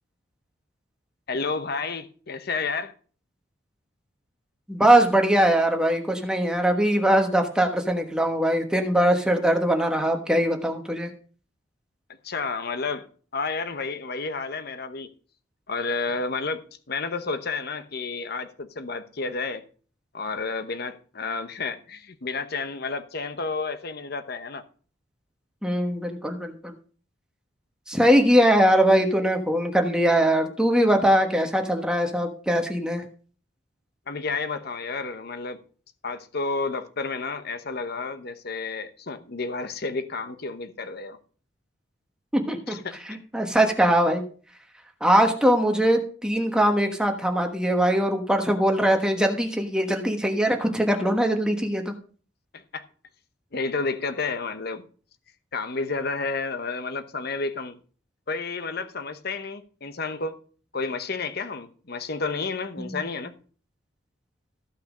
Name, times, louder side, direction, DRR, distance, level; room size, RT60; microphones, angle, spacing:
voice 1, 1.3-2.9 12.2-13.1 13.3-15.1 15.7-19.6 20.1-24.6 34.1-35.6 36.0-41.2 42.7-43.2 52.5-52.8 53.5-54.9 55.5-57.8 58.3-60.4 60.7-63.3, left 4 dB, 55° left, 0.9 m, -31 dB
voice 2, 4.7-11.1 25.6-26.7 27.9-33.0 42.3-42.8 43.1-44.2 45.0-51.9, right 1 dB, 5° right, 1.3 m, -21 dB
14.5 x 5.7 x 5.1 m
head